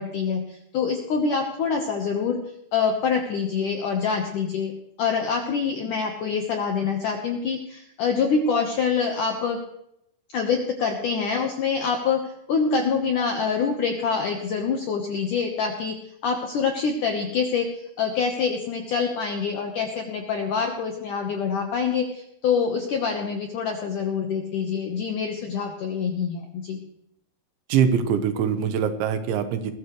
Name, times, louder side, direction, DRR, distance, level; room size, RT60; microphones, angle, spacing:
voice 1, 0.0-2.4 2.7-4.7 5.0-9.6 10.3-16.0 16.2-26.8, left 5 dB, 75° left, 3 dB, 1.9 m, -25 dB
voice 2, 27.7-29.7, right 7 dB, 80° right, 8 dB, 3.4 m, -23 dB
21.0 x 14.5 x 3.2 m, 0.78 s
omnidirectional pair, 5.4 m